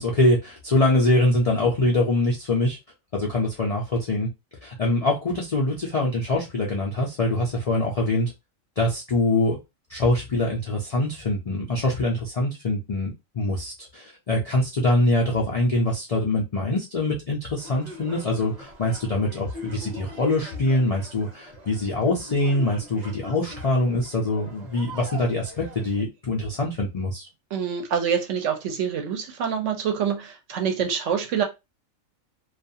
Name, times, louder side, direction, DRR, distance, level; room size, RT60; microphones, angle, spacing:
voice 1, 0.0-2.8 3.1-4.3 4.6-8.3 8.8-9.6 9.9-27.3, left 2 dB, 65° left, 0.3 m, -24 dB
sound 1, 17.6-26.0, equal, 40° right, 0.7 m, -42 dB
voice 2, 27.5-31.4, right 7 dB, 70° right, 0.9 m, -26 dB
2.3 x 2.3 x 2.6 m
omnidirectional pair, 1.4 m